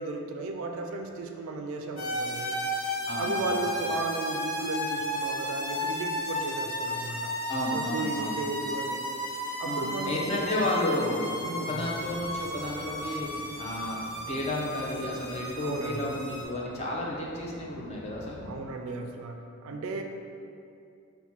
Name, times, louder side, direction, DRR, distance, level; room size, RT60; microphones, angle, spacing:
voice 1, 0.0-2.6 3.1-7.3 7.7-9.0 9.6-10.5 11.4-11.9 15.6-16.2 18.4-20.0, right 3 dB, 65° right, 4 dB, 0.3 m, -35 dB
sound 1, 2.0-16.4, left 1 dB, 65° left, 1.0 m, -34 dB
voice 2, 3.1-3.6 7.5-8.4 9.6-11.4 11.6-14.0 14.3-18.5 19.7-19.8, left 1 dB, 30° left, -3 dB, 0.5 m, -32 dB
sound 2, 11.8-18.5, equal, 5° right, 0.9 m, -49 dB
4.0 x 2.2 x 4.3 m, 2.5 s
head